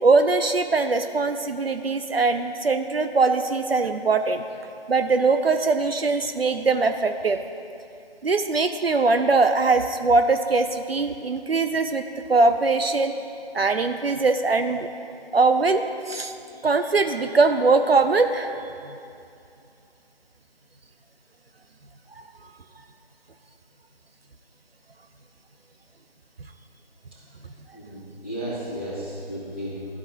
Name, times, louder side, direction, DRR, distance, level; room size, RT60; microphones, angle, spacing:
voice 1, 0.0-4.4 4.9-7.4 8.2-13.1 13.5-14.9 15.3-16.3 16.6-18.6 18.9-19.0 22.2-22.3, right 3 dB, 70° right, 7 dB, 0.6 m, -21 dB
voice 2, 27.7-29.9, equal, 10° right, -13 dB, 1.3 m, -33 dB
14.0 x 4.7 x 2.8 m, 2.5 s
figure-of-eight pair, 165°, 31 cm